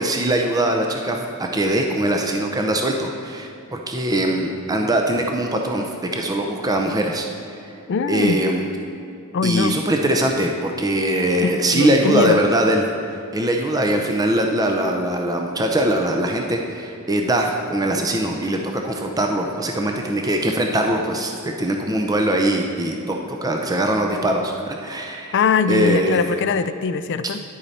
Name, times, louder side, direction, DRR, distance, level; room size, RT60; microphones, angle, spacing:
voice 1, 0.0-7.3 8.1-8.7 9.4-12.9 13.3-25.4 25.7-26.2, right 1 dB, 15° right, 2 dB, 0.6 m, -21 dB
voice 2, 7.9-8.4 9.3-9.8 11.4-12.4 25.3-27.4, left 5 dB, 55° left, 11 dB, 0.4 m, -21 dB
10.5 x 8.4 x 4.2 m, 2.7 s
head